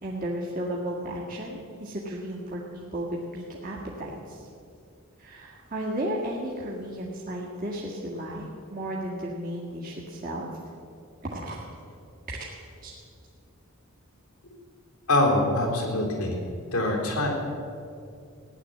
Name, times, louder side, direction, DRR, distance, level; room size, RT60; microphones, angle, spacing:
voice 1, 0.0-4.4 5.2-10.5 11.2-11.6 12.3-12.5 12.8-13.0, right 1 dB, 40° right, -4 dB, 1.9 m, -34 dB
voice 2, 15.1-16.4 16.7-17.3, left 1 dB, 85° left, 0 dB, 3.6 m, -24 dB
16.0 x 10.5 x 7.7 m, 2.5 s
head